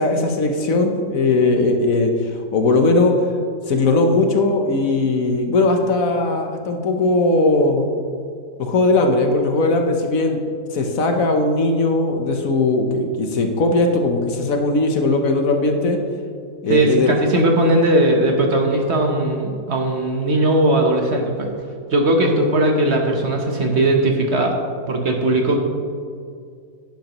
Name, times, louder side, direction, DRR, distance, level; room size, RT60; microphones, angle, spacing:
voice 1, 0.0-3.1 3.7-7.8 8.6-10.4 10.7-16.0 16.6-17.1, left 2 dB, 60° left, 4 dB, 1.2 m, -18 dB
voice 2, 16.7-21.5 21.9-24.6 24.9-25.6, right 1 dB, 50° right, 2 dB, 1.1 m, -18 dB
10.5 x 10.5 x 3.0 m, 2.2 s
omnidirectional pair, 1.7 m